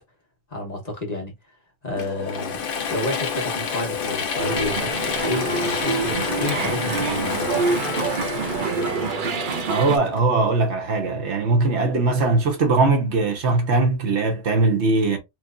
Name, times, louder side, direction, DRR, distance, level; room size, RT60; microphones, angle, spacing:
voice 1, 0.5-1.3 1.8-2.6 2.9-7.6, left 1 dB, 40° left, 1.1 m, -30 dB
Mechanisms / Drill, 2.0-10.6, left 6 dB, 55° left, 0.8 m, -29 dB
sound 1, 4.4-10.0, right 5 dB, 55° right, 0.7 m, -26 dB
voice 2, 9.7-15.2, right 3 dB, 75° right, 1.2 m, -20 dB
3.2 x 3.1 x 2.4 m
omnidirectional pair, 1.2 m